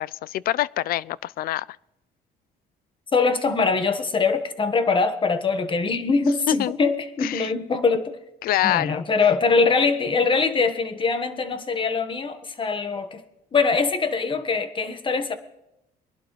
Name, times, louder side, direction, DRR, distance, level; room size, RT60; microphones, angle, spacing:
voice 1, 0.0-1.6 6.5-6.8 7.2-7.5 8.4-9.0, left 14 dB, 60° left, 0.4 m, -25 dB
voice 2, 3.1-8.1 8.6-13.2 13.5-15.3, left 4 dB, 30° left, 1.4 m, -23 dB
21.5 x 11.5 x 3.2 m
cardioid pair, 110°, 17 cm